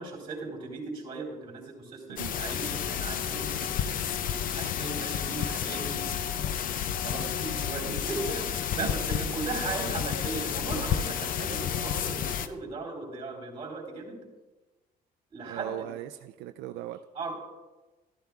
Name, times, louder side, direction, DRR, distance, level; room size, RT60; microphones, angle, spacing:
voice 1, 0.0-4.0 4.5-6.1 7.0-14.3 15.3-15.9 17.1-17.3, right 3 dB, 35° right, 2 dB, 3.3 m, -37 dB
sound 1, 2.2-12.5, left 9 dB, 55° left, 0.6 m, -31 dB
voice 2, 15.4-17.0, right 13 dB, 85° right, 7 dB, 0.4 m, -39 dB
12.5 x 11.5 x 2.4 m, 1.2 s
cardioid pair, 110°, 17 cm